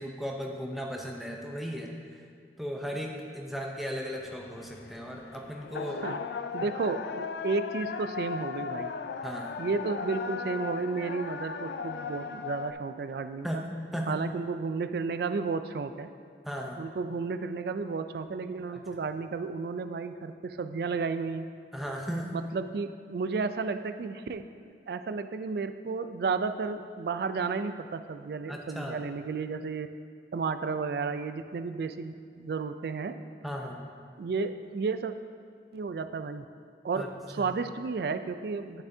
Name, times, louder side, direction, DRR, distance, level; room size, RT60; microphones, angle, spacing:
voice 1, 0.0-2.2 2.6-6.0 9.2-9.5 13.4-14.2 16.4-16.8 18.7-18.8 21.7-22.4 28.5-29.0 33.4-33.8 37.0-37.1 37.4-37.5, equal, ahead, 0 dB, 0.6 m, -36 dB
sound 1, 4.1-12.7, left 5 dB, 70° left, 0.3 m, -37 dB
voice 2, 6.5-8.9 9.6-13.6 14.1-16.1 16.8-21.5 22.3-24.4 24.9-29.9 30.3-33.1 34.2-35.1 35.7-36.5 36.8-37.0 37.3-38.8, right 4 dB, 60° right, 10 dB, 0.3 m, -32 dB
10.0 x 7.0 x 2.7 m, 2.2 s
head